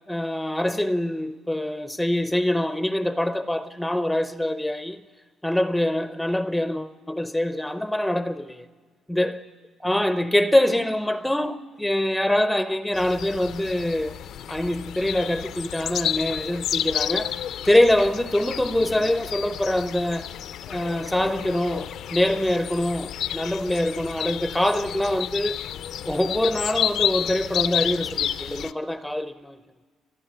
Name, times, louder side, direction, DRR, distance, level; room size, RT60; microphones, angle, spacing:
voice 1, 0.1-5.0 5.4-8.7 9.1-9.4 9.8-14.2 14.5-20.3 20.7-25.6 26.0-29.6, left 1 dB, 5° left, 0.5 m, -24 dB
sound 1, 12.9-28.7, left 10 dB, 70° left, 0.5 m, -31 dB
29.5 x 11.0 x 8.8 m
cardioid pair, 120°, 0 cm